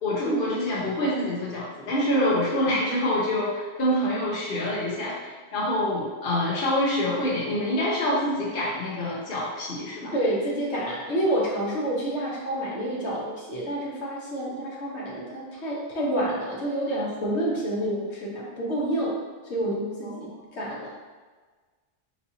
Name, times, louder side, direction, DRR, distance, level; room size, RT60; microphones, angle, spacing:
voice 1, 0.0-10.1 20.0-20.1, left 1 dB, 50° left, -6 dB, 1.0 m, -26 dB
voice 2, 10.0-19.2 19.4-20.9, right 1 dB, 70° left, -4 dB, 1.4 m, -28 dB
4.3 x 4.2 x 2.7 m, 1.4 s
omnidirectional pair, 1.2 m